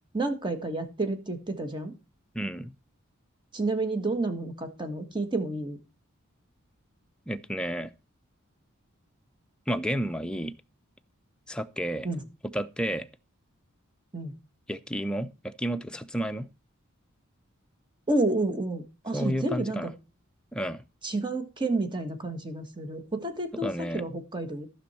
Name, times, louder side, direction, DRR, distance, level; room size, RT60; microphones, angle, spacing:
voice 1, 0.1-1.9 3.5-5.8 12.0-12.2 14.1-14.3 18.1-19.9 21.0-24.7, right 2 dB, 20° right, 1.5 m, -30 dB
voice 2, 2.3-2.7 7.3-7.9 9.7-10.5 11.5-12.1 12.5-13.1 14.7-16.5 19.1-19.9 20.5-20.8 23.6-24.0, equal, 5° left, 0.6 m, -31 dB
13.5 x 6.2 x 4.2 m
head